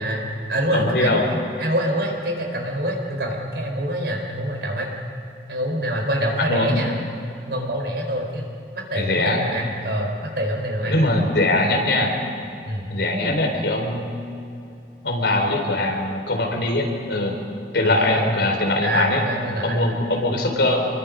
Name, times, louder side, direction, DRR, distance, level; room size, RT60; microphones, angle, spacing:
voice 1, 0.0-4.9 5.5-7.0 7.5-8.4 8.7-11.0 12.6-12.9 17.8-18.2 18.8-19.8, equal, 65° right, 1 dB, 4.8 m, -26 dB
voice 2, 0.7-1.2 6.4-6.8 8.9-9.4 10.9-12.2 12.9-14.1 15.0-17.4 17.7-19.2 19.6-20.9, left 2 dB, 70° left, 1 dB, 4.5 m, -21 dB
28.0 x 23.0 x 5.4 m, 2.6 s
head